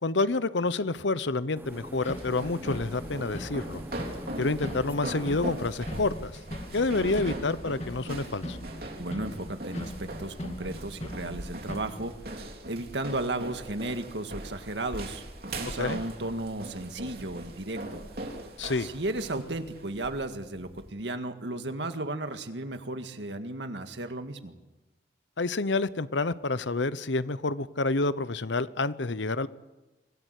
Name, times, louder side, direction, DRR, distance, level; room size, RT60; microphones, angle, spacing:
voice 1, 0.0-3.8 4.4-6.3 6.7-8.6 15.8-16.0 18.6-18.9 25.4-29.5, left 3 dB, 85° left, 15 dB, 0.9 m, -28 dB
sound 1, 1.6-6.3, equal, 10° right, 1.1 m, -45 dB
sound 2, 1.7-20.9, right 1 dB, 55° right, 3.6 m, -40 dB
sound 3, 2.0-12.1, left 1 dB, 35° left, 2.1 m, -41 dB
voice 2, 9.0-15.2 15.6-18.0 18.8-24.6, right 2 dB, 75° right, 7 dB, 1.9 m, -34 dB
25.5 x 17.5 x 8.4 m, 1.1 s
head